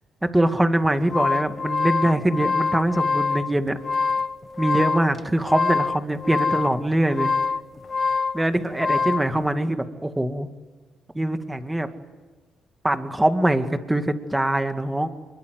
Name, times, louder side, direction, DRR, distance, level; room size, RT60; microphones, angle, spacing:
voice 1, 0.2-3.8 4.6-7.3 8.3-10.5 11.1-11.9 12.8-15.1, right 1 dB, 10° right, 7 dB, 2.2 m, -23 dB
sound 1, 0.8-9.3, left 4 dB, 35° left, 1.1 m, -25 dB
25.0 x 22.0 x 9.6 m, 1.3 s
cardioid pair, 90°, 0 cm